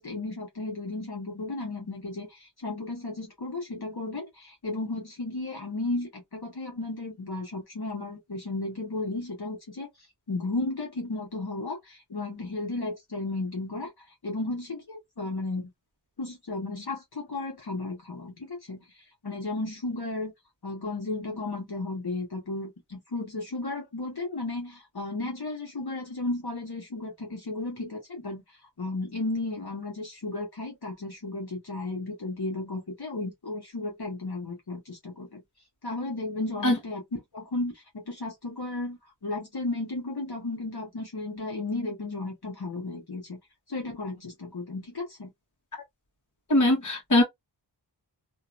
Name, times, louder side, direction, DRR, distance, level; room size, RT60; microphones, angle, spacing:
voice 1, 0.0-9.9 10.3-13.9 14.2-15.7 16.2-18.8 19.2-20.3 20.6-28.4 28.8-35.4 35.8-37.0 37.3-43.4 43.7-45.3, left 2 dB, 60° left, 1.4 m, -34 dB
voice 2, 46.5-47.2, left 1 dB, 45° left, 1.5 m, -21 dB
2.9 x 2.7 x 2.5 m
wide cardioid pair, 65°, 44 cm